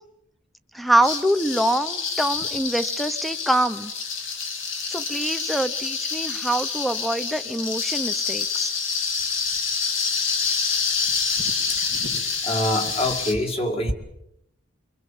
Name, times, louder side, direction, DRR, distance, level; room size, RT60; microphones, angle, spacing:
voice 1, 0.7-3.9 4.9-8.7, right 1 dB, ahead, 12 dB, 0.9 m, -24 dB
sound 1, 1.0-13.3, left 5 dB, 65° left, 2.7 m, -27 dB
voice 2, 12.4-13.9, left 1 dB, 30° left, 4 dB, 2.3 m, -25 dB
25.0 x 22.5 x 7.4 m, 0.78 s
head